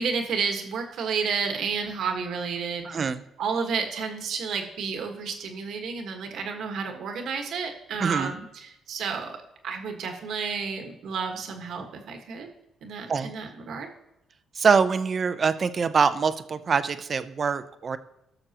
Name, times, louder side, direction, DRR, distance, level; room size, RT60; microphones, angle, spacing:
voice 1, 0.0-3.0 3.4-9.4 9.6-12.5 12.8-13.9, right 5 dB, 75° right, 4 dB, 1.5 m, -31 dB
voice 2, 2.8-3.2 8.0-8.3 13.1-13.3 14.6-18.0, right 5 dB, 45° right, 11 dB, 0.7 m, -24 dB
19.0 x 6.5 x 3.0 m, 0.85 s
cardioid pair, 90°, 0 cm